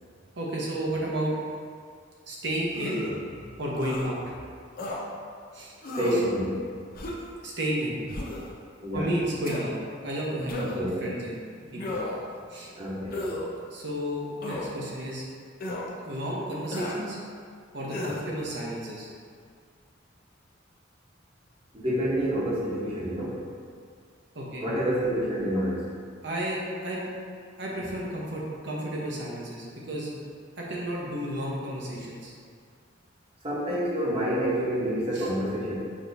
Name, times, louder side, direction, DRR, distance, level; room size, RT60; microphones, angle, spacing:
voice 1, 0.4-1.3 2.3-4.3 5.5-5.7 6.1-6.2 7.4-8.0 8.9-9.8 10.0-12.0 12.5-12.7 13.7-15.2 16.1-17.2 17.7-19.1 24.3-24.7 26.2-27.0 27.6-30.1 30.6-32.3 35.1-35.3, right 1 dB, 65° right, -4 dB, 0.9 m, -32 dB
sound 1, 2.7-3.2 3.8-4.1 4.8-5.0 5.8-6.3 6.9-7.3 8.1-8.5 9.4-9.6 10.5-10.9 11.8-12.3 13.1-13.5 14.4-14.7 15.6-15.9 16.7-17.0 17.9-18.2, left 2 dB, 50° left, 0.6 m, -33 dB
voice 2, 5.9-6.6 8.8-9.1 10.6-11.0 12.8-13.2 21.7-23.4 24.6-25.8 33.4-35.8, equal, 30° right, -7 dB, 1.0 m, -28 dB
6.2 x 3.0 x 2.7 m, 2.1 s
head